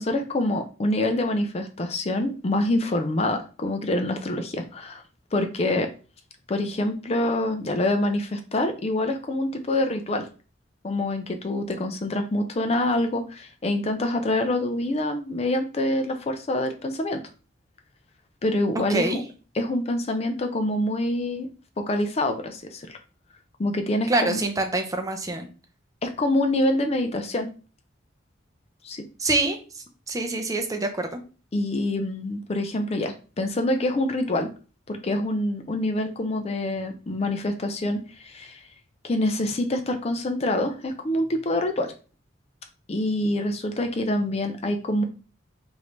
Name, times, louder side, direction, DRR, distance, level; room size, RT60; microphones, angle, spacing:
voice 1, 0.0-5.0 5.3-5.9 6.5-10.3 10.8-17.2 18.4-19.2 19.5-21.5 21.8-23.0 23.6-24.4 26.0-27.5 28.8-29.0 31.5-34.5 34.9-38.6 39.0-41.9 42.9-45.0, left 1 dB, 30° left, 6 dB, 0.4 m, -26 dB
voice 2, 18.9-19.2 24.1-25.5 29.2-31.2, right 2 dB, 15° right, 5 dB, 0.5 m, -26 dB
4.8 x 2.6 x 3.2 m, 0.35 s
head